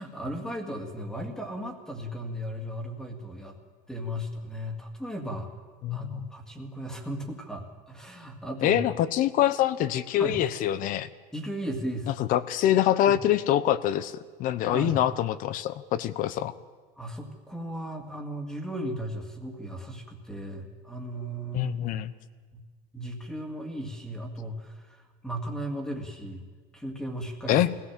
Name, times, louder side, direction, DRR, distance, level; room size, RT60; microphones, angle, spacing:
voice 1, 0.0-3.6 3.9-5.5 5.9-8.9 10.2-10.4 11.3-12.1 13.1-13.2 14.7-15.0 17.0-21.9 22.5-22.6 22.9-26.5 26.7-27.6, equal, 5° left, 4 dB, 2.2 m, -36 dB
voice 2, 5.8-6.3 8.6-11.1 12.1-14.1 14.4-16.5 21.5-22.1 27.5-27.7, left 12 dB, 50° left, 15 dB, 0.9 m, -25 dB
23.0 x 17.0 x 7.5 m, 1.5 s
cardioid pair, 155°, 18 cm